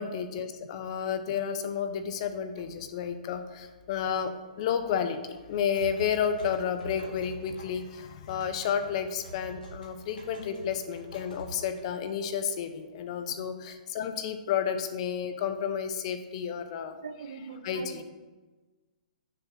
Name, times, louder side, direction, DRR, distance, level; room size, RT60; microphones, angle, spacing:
voice 1, 0.0-16.9 17.6-18.0, left 7 dB, 45° left, 9 dB, 0.7 m, -31 dB
sound 1, 5.4-12.2, right 2 dB, 80° left, 2.1 m, -46 dB
voice 2, 17.0-18.0, right 6 dB, 75° right, 9 dB, 0.6 m, -42 dB
6.9 x 3.4 x 6.1 m, 1.3 s
hypercardioid pair, 135°, 5 cm